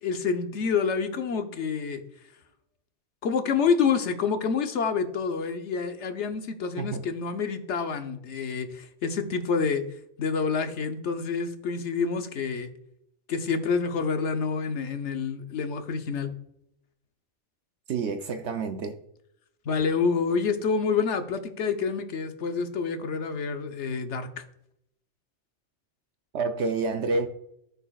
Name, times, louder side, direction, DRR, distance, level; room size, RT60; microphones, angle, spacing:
voice 1, 0.0-2.0 3.2-9.8 10.2-12.7 13.3-16.3 19.6-24.4, left 5 dB, 80° left, 1.1 m, -28 dB
voice 2, 17.9-18.9 26.3-27.3, right 4 dB, 75° right, 0.9 m, -28 dB
13.5 x 5.5 x 2.3 m
omnidirectional pair, 1.2 m